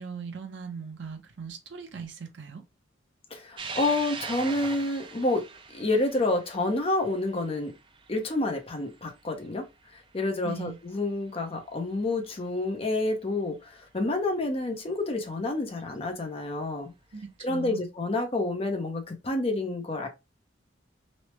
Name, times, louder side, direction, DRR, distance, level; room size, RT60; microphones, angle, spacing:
voice 1, 0.0-2.6 10.4-10.8 17.1-17.8, right 5 dB, 70° right, 0.6 m, -39 dB
voice 2, 3.3-5.5 5.7-7.7 8.1-9.7 9.9-16.9 17.4-20.1, left 2 dB, 30° left, 0.6 m, -29 dB
sound 1, 3.6-10.2 10.7-10.8 12.0-12.1 14.3-14.4 15.8-16.1, right 5 dB, 25° right, 0.4 m, -42 dB
3.1 x 2.0 x 3.0 m
head